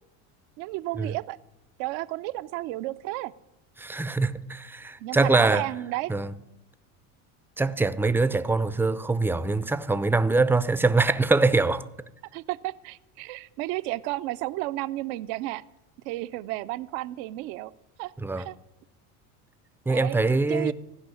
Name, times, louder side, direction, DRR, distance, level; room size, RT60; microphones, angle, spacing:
voice 1, 0.6-1.4 1.8-3.3 5.0-6.1 12.3-15.6 16.0-17.7 18.0-18.6 19.9-20.7, right 18 dB, 70° right, 0.7 m, -32 dB
voice 2, 3.8-5.7 6.1-6.3 7.6-11.9 18.2-18.4 19.9-20.7, right 3 dB, 5° right, 0.5 m, -23 dB
15.5 x 5.5 x 9.7 m
supercardioid pair, 90°, 44 cm